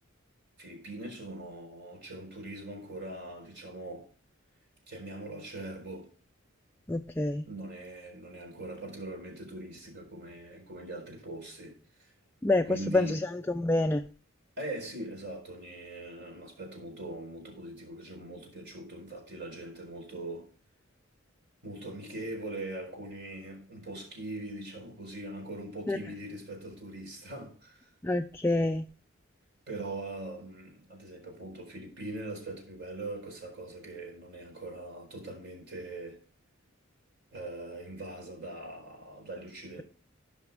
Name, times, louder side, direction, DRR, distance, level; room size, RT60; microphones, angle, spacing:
voice 1, 0.6-4.1 4.9-6.1 7.5-12.1 12.7-13.2 14.6-20.5 21.6-27.9 29.7-36.2 37.3-39.8, right 1 dB, 55° right, 4.3 m, -41 dB
voice 2, 6.9-7.5 12.4-14.1 25.9-26.0 28.0-28.9, left 2 dB, 10° left, 0.4 m, -27 dB
16.5 x 5.8 x 3.6 m
head